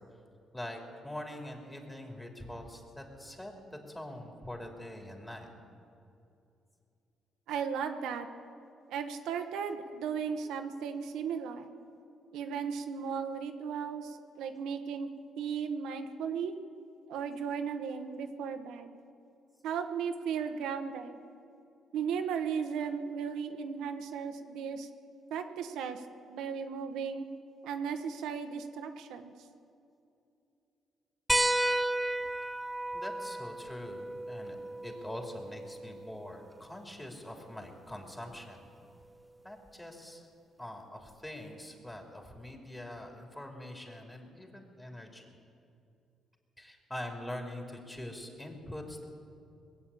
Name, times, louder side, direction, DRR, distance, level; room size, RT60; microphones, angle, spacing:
voice 1, 0.5-3.5 3.9-5.5 32.9-34.6 34.8-38.7 39.4-40.3 40.6-45.3 46.6-49.1, left 1 dB, 10° left, 1 dB, 3.0 m, -44 dB
voice 2, 7.5-8.3 8.9-11.7 12.3-15.1 15.4-16.5 17.1-19.0 19.6-21.2 21.9-24.9 25.3-26.0 26.3-27.2 27.6-29.3, right 6 dB, 90° right, 6 dB, 1.0 m, -36 dB
sound 1, 31.3-36.4 37.9-38.0 39.7-39.8, right 1 dB, 5° right, 0.4 m, -33 dB
20.5 x 8.4 x 8.4 m, 2.6 s
cardioid pair, 90°, 0 cm